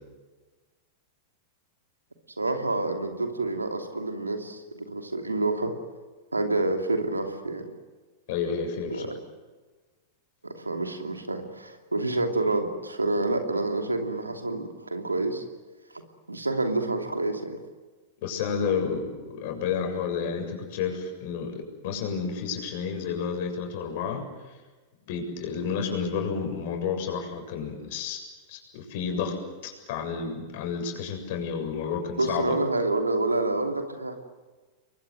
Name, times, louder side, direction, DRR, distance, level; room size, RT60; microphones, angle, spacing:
voice 1, 2.4-5.7 6.3-7.7 8.9-9.1 10.4-15.4 16.3-17.6 32.2-34.2, right 2 dB, 90° right, 5 dB, 2.9 m, -28 dB
voice 2, 8.3-9.1 18.2-24.3 25.1-28.2 28.5-29.4 29.6-32.6, left 6 dB, 55° left, 4 dB, 7.3 m, -31 dB
29.5 x 23.0 x 7.8 m, 1.3 s
figure-of-eight pair, 95°, 0 cm